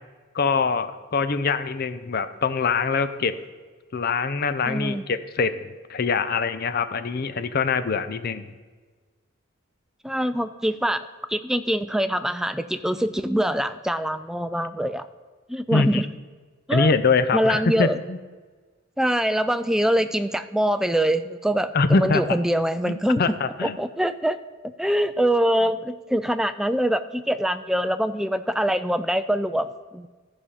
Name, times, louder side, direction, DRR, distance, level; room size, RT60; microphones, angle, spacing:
voice 1, 0.3-3.4 3.9-8.5 15.7-16.0 16.7-18.2 21.7-22.2 23.2-23.8, left 4 dB, 50° left, 12 dB, 0.5 m, -23 dB
voice 2, 4.6-5.0 10.0-15.1 15.5-16.1 16.7-16.9 17.3-18.0 19.0-23.4 23.6-24.4 24.8-30.1, equal, 5° right, 10 dB, 0.3 m, -24 dB
13.5 x 5.0 x 5.6 m, 1.4 s
head